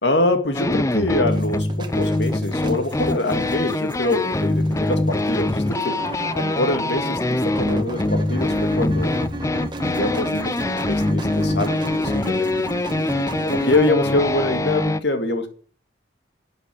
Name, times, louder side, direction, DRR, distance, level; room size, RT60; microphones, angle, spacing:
voice 1, 0.0-9.2 9.8-12.6 12.9-13.0 13.4-15.5, left 2 dB, 60° left, 7 dB, 2.2 m, -24 dB
sound 1, 0.5-15.0, left 2 dB, 15° left, 0.5 m, -23 dB
sound 2, 1.3-13.9, right 1 dB, 25° right, 1.4 m, -34 dB
11.0 x 8.3 x 7.8 m, 0.43 s
head